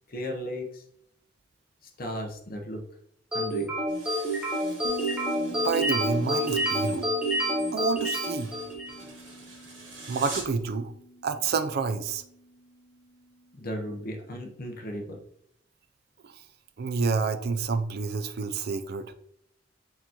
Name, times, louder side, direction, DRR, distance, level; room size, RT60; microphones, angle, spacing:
voice 1, 0.1-0.8 1.8-2.8 3.3-3.7 13.5-15.2, equal, 50° left, 2 dB, 0.9 m, -35 dB
sound 1, 3.3-9.1, right 1 dB, 5° right, 1.0 m, -28 dB
sound 2, 3.9-10.6, right 3 dB, 80° right, 1.6 m, -45 dB
Bass guitar, 4.8-14.2, right 1 dB, 65° left, 1.1 m, -45 dB
voice 2, 5.5-7.1 7.7-8.5 10.1-10.9 11.2-12.2 16.2-16.3 16.8-19.1, right 5 dB, 55° right, 11 dB, 0.4 m, -29 dB
4.4 x 3.8 x 2.9 m, 0.71 s
head